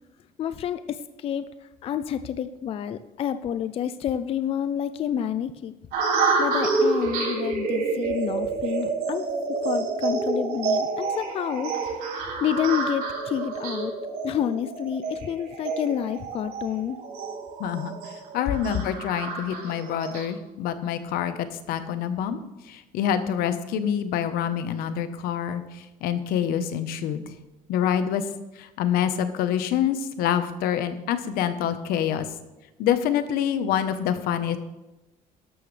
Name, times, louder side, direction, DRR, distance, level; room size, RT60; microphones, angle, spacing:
voice 1, 0.4-5.7 6.4-9.3 9.6-13.9 14.2-17.0, left 9 dB, 40° left, 11 dB, 0.4 m, -29 dB
sound 1, 5.9-20.3, right 4 dB, 85° right, 5.0 m, -28 dB
voice 2, 17.6-17.9 18.3-22.4 22.7-27.2 27.7-28.2 28.6-32.3 32.8-34.6, left 9 dB, 85° left, 10 dB, 1.1 m, -26 dB
13.5 x 11.5 x 3.3 m, 1.0 s
cardioid pair, 155°, 15 cm